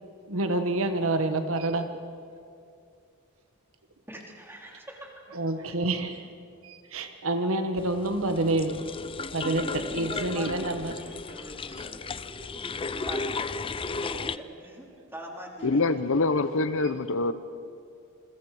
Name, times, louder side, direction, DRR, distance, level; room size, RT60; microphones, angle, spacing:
voice 1, 0.3-2.0 5.3-6.3 6.6-8.8 9.3-11.0, right 2 dB, 70° right, 7 dB, 1.4 m, -28 dB
voice 2, 4.1-5.3 9.4-15.8, right 1 dB, 10° right, -1 dB, 3.4 m, -43 dB
sound 1, 7.8-14.4, left 4 dB, 25° left, 0.5 m, -35 dB
voice 3, 15.6-17.3, left 3 dB, 65° left, 12 dB, 0.9 m, -25 dB
28.5 x 22.5 x 5.0 m, 2.4 s
head